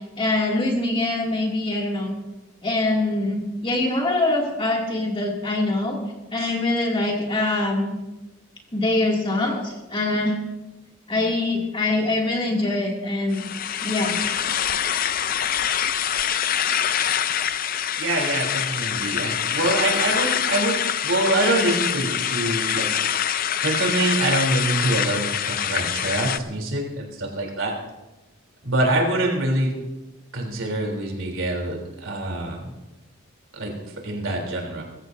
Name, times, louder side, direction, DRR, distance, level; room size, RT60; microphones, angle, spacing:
voice 1, 0.2-2.1 2.6-6.0 6.3-7.9 8.7-10.3 11.1-13.5 13.8-14.2, left 2 dB, 25° left, -1 dB, 2.5 m, -23 dB
sound 1, 13.3-26.4, left 9 dB, 40° left, 0.5 m, -25 dB
voice 2, 18.0-22.9 23.6-27.7 28.6-29.7 30.3-32.7 33.5-34.8, right 2 dB, 65° right, 1 dB, 3.4 m, -25 dB
22.5 x 14.5 x 2.7 m, 1.0 s
head